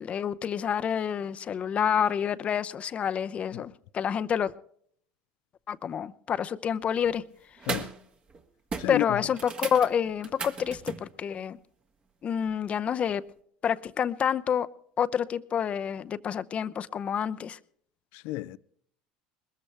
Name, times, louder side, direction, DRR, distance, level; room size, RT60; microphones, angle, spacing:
voice 1, 0.0-4.5 5.7-7.2 8.9-11.6 12.2-13.2 13.6-14.7 15.0-17.6, left 8 dB, 40° left, 0.7 m, -28 dB
sound 1, 6.8-7.1 7.6-8.0 8.3-8.4 8.7-11.1 13.1-13.2, right 4 dB, 30° right, 1.7 m, -37 dB
voice 2, 8.8-9.2 18.1-18.6, left 17 dB, 70° left, 0.6 m, -32 dB
21.0 x 14.0 x 3.4 m
supercardioid pair, 95°, 3 cm